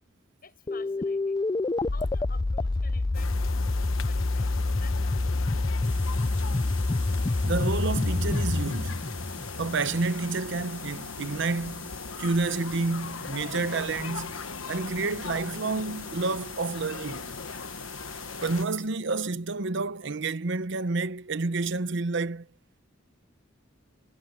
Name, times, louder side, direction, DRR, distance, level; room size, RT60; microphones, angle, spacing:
voice 1, 0.4-1.4 1.9-4.5 4.8-5.6, left 5 dB, 50° left, 6.9 m, -51 dB
sound 1, 0.7-10.0, left 2 dB, 20° left, 0.4 m, -27 dB
sound 2, 3.1-18.7, left 5 dB, 85° left, 1.1 m, -39 dB
sound 3, 5.8-18.9, right 3 dB, 10° right, 3.9 m, -49 dB
voice 2, 7.4-9.0 9.6-11.9 12.2-17.4 18.4-22.5, right 3 dB, 65° right, 0.8 m, -29 dB
head